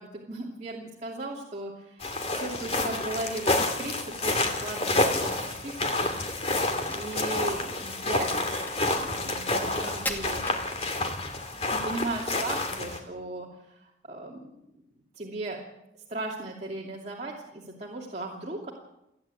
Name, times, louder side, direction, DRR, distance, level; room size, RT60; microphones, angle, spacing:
voice 1, 0.0-6.1 6.9-10.7 11.5-14.6 15.1-15.6 16.1-18.7, right 2 dB, 35° right, -3 dB, 2.7 m, -37 dB
sound 1, 2.0-13.0, left 2 dB, 35° left, 2.5 m, -29 dB
Crack, 6.8-11.3, left 1 dB, 10° left, 2.2 m, -40 dB
30.0 x 10.5 x 9.1 m, 0.86 s
head